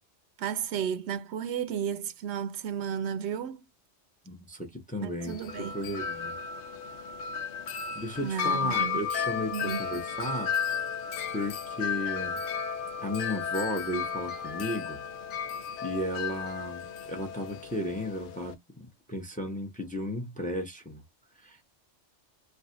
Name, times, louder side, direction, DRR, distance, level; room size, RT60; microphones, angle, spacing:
voice 1, 0.4-3.6 5.0-5.7 8.2-9.0 9.5-9.9, right 8 dB, 75° right, 0.8 m, -33 dB
voice 2, 4.3-6.3 7.9-10.5 11.3-12.4 13.0-15.0 15.8-21.0 21.4-21.6, left 1 dB, 10° left, 0.6 m, -34 dB
Wind chime, 5.2-18.5, left 6 dB, 85° left, 0.9 m, -34 dB
3.3 x 2.4 x 2.6 m
omnidirectional pair, 1.2 m